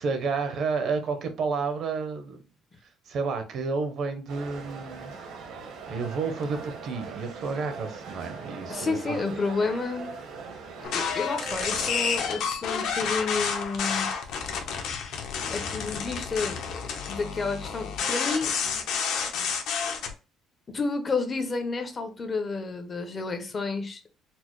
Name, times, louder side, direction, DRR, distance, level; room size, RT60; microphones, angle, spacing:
voice 1, 0.0-2.4 3.1-5.1 5.9-9.2, right 4 dB, 50° right, 0.6 m, -30 dB
sound 1, 4.3-12.4, right 5 dB, 75° right, 0.9 m, -40 dB
voice 2, 8.7-10.1 10.9-14.1 15.5-16.8 17.1-18.5 20.7-24.0, left 4 dB, 25° left, 0.5 m, -30 dB
sound 2, 10.8-20.1, left 6 dB, 70° left, 0.7 m, -30 dB
4.2 x 2.0 x 3.0 m
cardioid pair, 155°, 0 cm